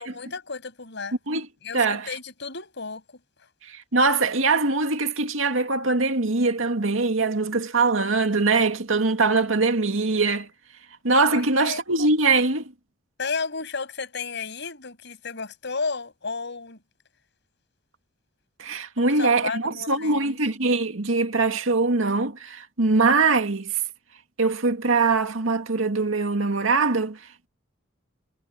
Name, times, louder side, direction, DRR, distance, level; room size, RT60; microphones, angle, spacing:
voice 1, 0.0-1.2 1.6-3.0 11.3-11.8 13.2-16.8 19.0-20.4, left 4 dB, 65° left, 7.0 m, -33 dB
voice 2, 1.7-2.1 3.9-10.5 11.0-12.7 18.6-23.8 24.4-27.2, right 3 dB, 90° right, 2.2 m, -22 dB
head